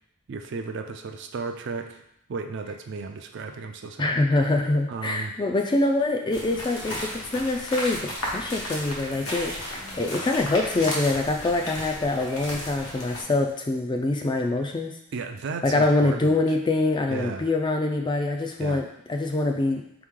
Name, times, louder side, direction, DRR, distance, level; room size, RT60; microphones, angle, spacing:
voice 1, 0.3-2.0 2.3-4.2 4.9-5.3 15.1-16.3 17.1-17.5 18.6-18.8, right 4 dB, 55° right, 6 dB, 0.4 m, -34 dB
voice 2, 4.0-14.9 15.6-18.8 19.1-19.8, left 2 dB, 20° left, 3 dB, 0.3 m, -25 dB
sound 1, 6.3-13.2, left 1 dB, 80° left, 1.2 m, -34 dB
4.2 x 3.0 x 3.6 m, 0.77 s
head